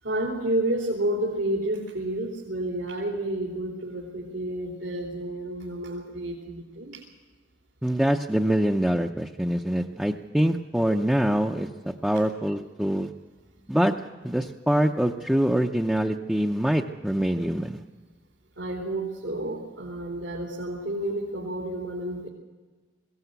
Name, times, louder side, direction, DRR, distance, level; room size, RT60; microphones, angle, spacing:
voice 1, 0.0-7.0 18.5-22.3, right 1 dB, 85° right, -2 dB, 3.3 m, -30 dB
voice 2, 7.8-13.1 13.7-13.9 14.2-17.8, equal, 5° right, 0 dB, 0.6 m, -24 dB
21.0 x 17.0 x 8.1 m, 1.3 s
head